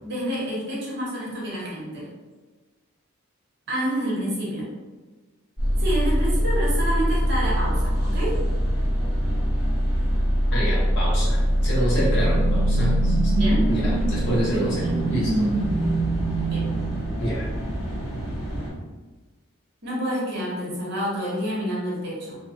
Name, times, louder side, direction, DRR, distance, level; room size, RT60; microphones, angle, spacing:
voice 1, 0.0-2.1 3.7-4.7 5.8-8.4 13.3-13.6 16.4-16.7 19.8-22.4, equal, 50° right, -5 dB, 0.9 m, -28 dB
sound 1, 5.6-18.7, equal, 35° left, 1.3 m, -24 dB
voice 2, 10.5-13.3 13.7-15.5 17.2-17.5, equal, 55° left, -6 dB, 1.0 m, -27 dB
sound 2, 11.3-17.9, right 3 dB, 80° right, 0.4 m, -27 dB
2.6 x 2.3 x 2.8 m, 1.3 s
head